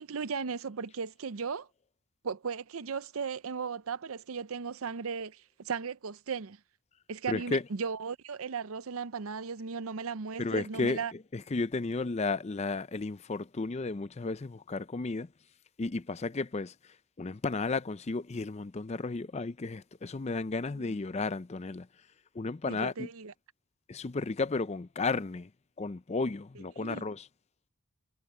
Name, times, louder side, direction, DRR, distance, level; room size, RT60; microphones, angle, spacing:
voice 1, 0.0-1.7 2.2-6.6 7.1-11.1 20.8-20.9 22.7-23.3 26.8-27.1, right 5 dB, 70° right, 0.6 m, -36 dB
voice 2, 7.3-7.6 10.4-11.0 11.3-15.3 15.8-16.7 17.2-21.9 22.4-23.1 23.9-25.5 25.8-27.3, left 3 dB, 30° left, 0.5 m, -33 dB
head